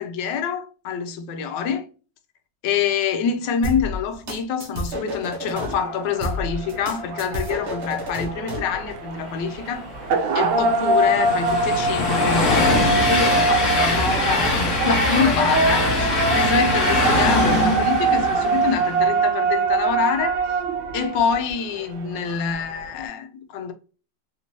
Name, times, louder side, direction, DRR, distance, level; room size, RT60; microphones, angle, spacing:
voice 1, 0.0-1.9 2.6-9.9 10.3-20.4 20.9-23.7, left 6 dB, 80° left, 1.3 m, -26 dB
sound 1, 3.6-5.7 6.2-8.7, equal, 45° right, 1.0 m, -30 dB
sound 2, 5.5-23.1, right 3 dB, 80° right, 1.3 m, -24 dB
Train, 9.8-19.2, left 2 dB, 50° left, 1.1 m, -23 dB
3.5 x 2.6 x 2.9 m
omnidirectional pair, 2.0 m